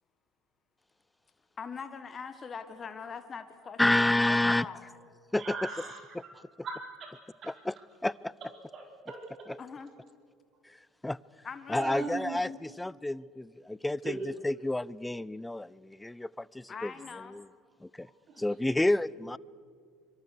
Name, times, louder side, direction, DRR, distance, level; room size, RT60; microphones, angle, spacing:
voice 1, 1.6-4.9 9.6-9.9 11.4-12.1 16.7-17.3, left 5 dB, 30° left, 9 dB, 1.5 m, -42 dB
voice 2, 3.8-4.7 5.3-5.7 7.4-7.7 8.0-8.3 11.0-11.2 11.7-14.2 14.4-16.9 17.3-17.4 17.8-18.1 18.4-19.4, left 1 dB, 10° left, 23 dB, 0.6 m, -29 dB
voice 3, 5.4-6.0 6.6-7.5 8.7-9.5 11.8-12.4 14.0-14.2 18.3-18.4, right 4 dB, 45° right, 2 dB, 4.5 m, -39 dB
25.0 x 24.0 x 6.7 m, 2.1 s
hypercardioid pair, 65°, 0 cm